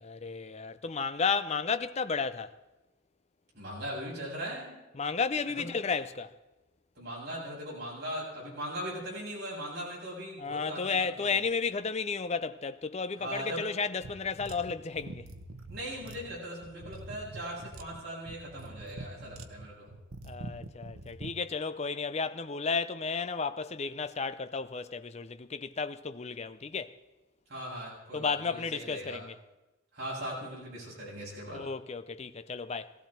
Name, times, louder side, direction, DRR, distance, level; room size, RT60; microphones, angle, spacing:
voice 1, 0.0-2.5 4.9-6.3 10.4-15.3 20.2-27.0 28.1-29.3 31.5-32.9, left 5 dB, 30° left, 0.5 m, -33 dB
voice 2, 3.5-4.8 5.4-5.7 7.0-11.4 13.2-13.6 15.7-19.9 27.5-29.2 29.9-31.6, equal, 50° right, 7.6 m, -39 dB
sound 1, 14.0-21.4, right 2 dB, 80° right, 1.1 m, -45 dB
18.0 x 15.5 x 4.4 m
head